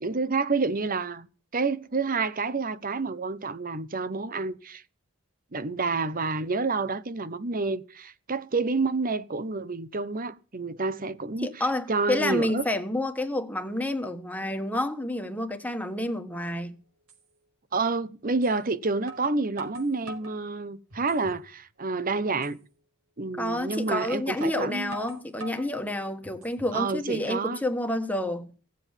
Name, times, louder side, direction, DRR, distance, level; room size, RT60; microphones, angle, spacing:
voice 1, 0.0-1.3 1.5-4.8 5.5-11.5 11.9-12.6 17.7-22.6 23.2-25.0 26.7-27.6, right 3 dB, 40° right, 0.9 m, -29 dB
voice 2, 11.4-16.8 23.4-28.5, left 1 dB, 5° left, 1.4 m, -29 dB
sound 1, 17.1-17.2 18.4-18.6 19.1-20.4 20.9-21.4 21.8-21.9 22.4-22.6 23.7-23.9 24.4-25.7 26.2-26.8, right 2 dB, 85° right, 5.0 m, -44 dB
17.0 x 7.8 x 7.2 m
head